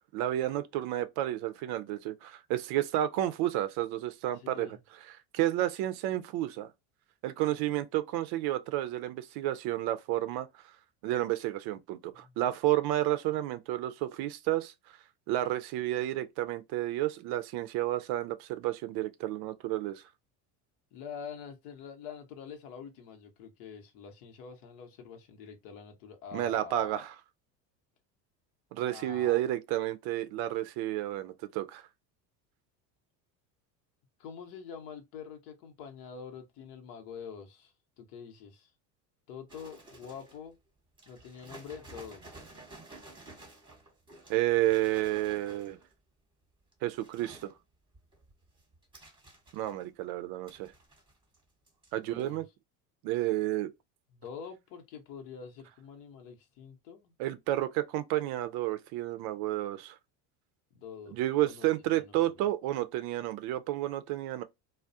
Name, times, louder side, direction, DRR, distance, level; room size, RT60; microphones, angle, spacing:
voice 1, 0.1-4.8 5.3-6.7 7.2-10.5 11.0-14.7 15.3-20.0 26.3-27.1 28.7-31.8 44.3-45.8 46.8-47.5 49.5-50.7 51.9-52.5 53.0-53.7 57.2-60.0 61.1-64.4, right 14 dB, 55° right, 0.5 m, -31 dB
voice 2, 4.3-4.8 12.1-12.4 20.9-27.1 28.9-29.4 34.2-38.7 39.3-40.5 41.1-42.3 51.9-52.4 54.1-57.1 60.7-61.7 62.0-62.3, left 7 dB, 70° left, 0.9 m, -46 dB
sound 1, 39.5-40.5 41.0-46.0 46.6-47.5 47.9-50.0 50.5-51.4 51.7-51.9 52.2-52.3, right 2 dB, 10° right, 0.9 m, -52 dB
2.3 x 2.1 x 2.5 m
hypercardioid pair, 80°, 48 cm